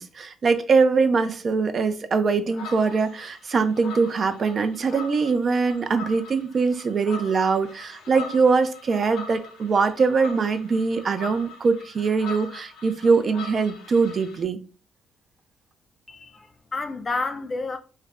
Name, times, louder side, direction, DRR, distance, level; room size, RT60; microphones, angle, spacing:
voice 1, 0.0-14.6, right 4 dB, 45° right, 0.4 m, -22 dB
sound 1, 2.5-14.4, left 4 dB, 90° left, 0.7 m, -42 dB
voice 2, 16.1-17.8, left 3 dB, 35° left, 0.4 m, -30 dB
2.4 x 2.0 x 3.4 m
cardioid pair, 90°, 0 cm